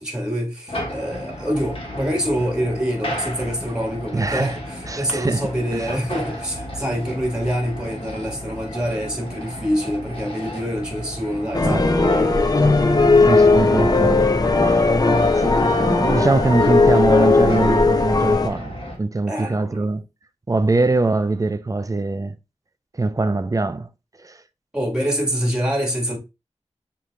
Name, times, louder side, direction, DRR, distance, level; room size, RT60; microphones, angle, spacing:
voice 1, 0.0-12.5 19.3-19.9 24.7-26.2, equal, 5° right, 1.5 m, -26 dB
sound 1, 0.7-18.9, equal, 50° left, 1.4 m, -34 dB
voice 2, 4.1-4.6 4.9-5.9 11.6-12.1 13.3-14.3 14.6-14.8 15.4-20.0 20.5-22.3 23.0-23.9 24.2-24.4, right 3 dB, 30° right, 0.4 m, -23 dB
sound 2, 11.5-18.5, left 3 dB, 35° left, 0.6 m, -17 dB
6.4 x 2.9 x 2.2 m
wide cardioid pair, 65°, 12 cm